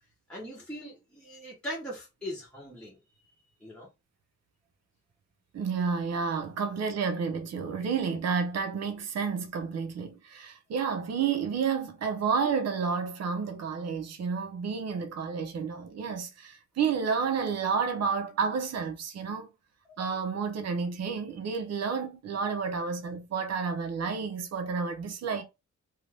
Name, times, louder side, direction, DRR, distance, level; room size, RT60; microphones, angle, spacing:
voice 1, 0.3-3.0 3.6-3.9, equal, 5° left, 0.8 m, -40 dB
voice 2, 5.5-19.5 20.0-25.4, right 5 dB, 60° right, 0.7 m, -30 dB
2.5 x 2.3 x 3.3 m
wide cardioid pair, 135°, 30 cm